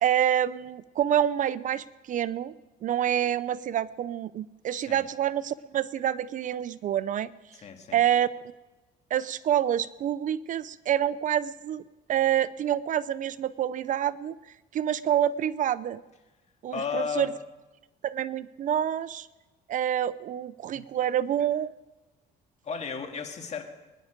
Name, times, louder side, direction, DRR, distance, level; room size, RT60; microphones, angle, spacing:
voice 1, 0.0-2.5 2.8-7.3 7.9-8.3 9.1-11.8 12.1-14.3 14.7-16.0 16.6-17.3 18.0-19.3 19.7-21.7, right 10 dB, 50° right, 17 dB, 0.5 m, -27 dB
voice 2, 7.6-8.0 16.7-17.3 20.7-20.9 22.6-23.6, left 6 dB, 40° left, 4 dB, 2.0 m, -33 dB
22.0 x 10.5 x 5.1 m, 1.1 s
cardioid pair, 110°, 17 cm